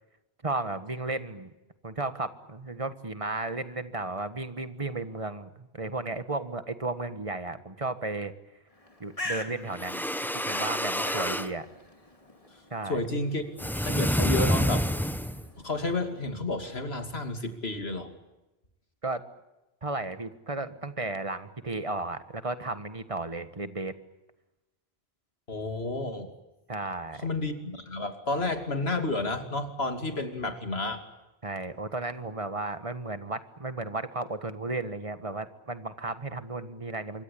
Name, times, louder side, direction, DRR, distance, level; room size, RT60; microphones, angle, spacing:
voice 1, 0.4-1.5 1.8-8.3 9.0-11.6 12.7-13.0 19.0-19.2 19.8-23.9 26.7-27.3 31.4-37.2, right 2 dB, 30° right, 11 dB, 1.6 m, -34 dB
Bird, 8.7-16.3, left 2 dB, 35° left, 2.7 m, -44 dB
sound 1, 9.7-11.5 13.6-15.5, equal, ahead, 0.8 m, -28 dB
voice 2, 12.9-13.4 13.7-14.9 15.6-18.1 25.5-26.3 27.2-31.0, left 2 dB, 80° left, 6 dB, 2.9 m, -31 dB
26.5 x 23.5 x 8.6 m, 1.0 s
omnidirectional pair, 1.0 m